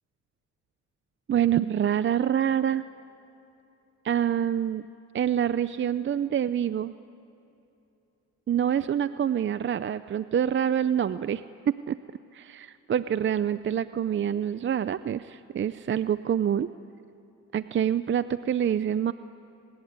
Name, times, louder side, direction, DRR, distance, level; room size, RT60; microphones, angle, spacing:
voice 1, 1.3-2.8 4.0-4.9 5.1-6.9 8.5-12.0 12.3-16.7 17.5-19.1, right 9 dB, 40° right, 13 dB, 0.6 m, -26 dB
29.5 x 20.0 x 9.6 m, 2.9 s
cardioid pair, 90°, 30 cm